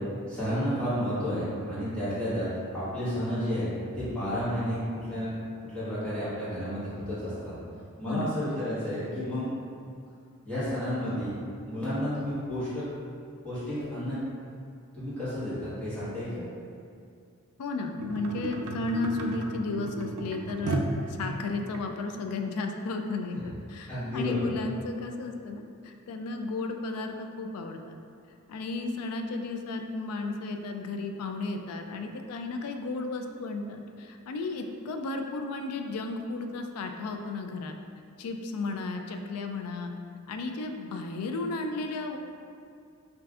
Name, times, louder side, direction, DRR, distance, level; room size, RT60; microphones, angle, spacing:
voice 1, 0.3-2.5 2.7-5.3 5.6-7.5 8.0-9.6 10.4-11.3 11.6-12.8 13.4-14.2 14.9-16.5 23.9-24.5, equal, 5° left, -14 dB, 1.4 m, -31 dB
voice 2, 8.0-8.4 17.6-20.9 21.2-28.0 28.5-37.8 38.2-39.9 40.3-42.2, left 3 dB, 85° left, 4 dB, 0.3 m, -34 dB
sound 1, 18.0-21.8 22.5-22.6, right 2 dB, 75° right, 0.4 m, -34 dB
5.5 x 2.5 x 2.4 m, 2.3 s
head